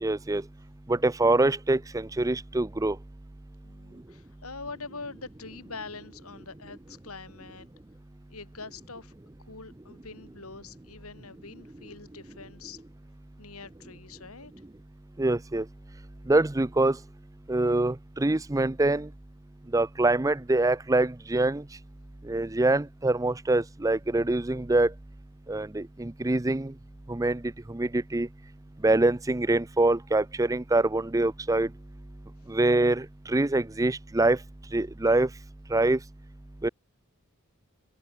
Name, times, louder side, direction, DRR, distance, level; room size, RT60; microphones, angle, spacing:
voice 1, 0.0-0.4 0.9-3.0 15.2-15.6 16.3-17.0 17.5-19.1 19.7-21.6 22.3-24.9 25.5-26.7 27.1-27.4 27.7-28.3 28.8-31.7 32.5-34.4 34.7-35.3 35.7-36.0 36.6-36.7, right 2 dB, 15° right, 0.5 m, -24 dB
voice 2, 3.6-7.7 8.3-9.1 9.4-12.8 13.4-14.5, left 4 dB, 80° left, 4.4 m, -44 dB
open air
head